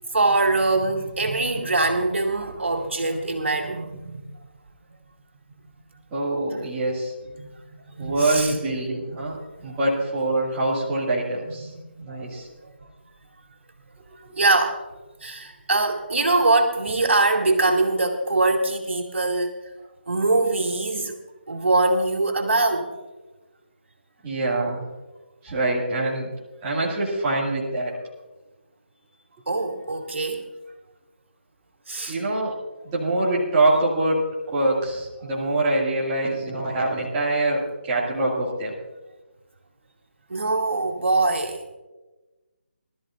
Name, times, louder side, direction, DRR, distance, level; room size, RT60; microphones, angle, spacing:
voice 1, 0.1-4.2 6.6-6.7 7.4-7.5 7.9-8.6 9.6-9.7 11.5-12.2 12.6-12.7 14.4-14.8 15.2-19.6 20.1-21.2 21.5-22.9 29.5-30.4 31.9-32.2 40.3-41.7, right 2 dB, 80° right, 2 dB, 2.4 m, -23 dB
voice 2, 6.1-7.1 8.0-9.4 9.6-11.7 12.0-12.5 14.2-14.4 24.2-24.8 25.4-26.3 26.6-28.0 32.1-32.5 32.8-34.2 34.5-38.7 40.5-40.6, right 2 dB, 15° right, -7 dB, 2.3 m, -24 dB
20.5 x 13.5 x 2.5 m, 1.1 s
hypercardioid pair, 175°, 6 cm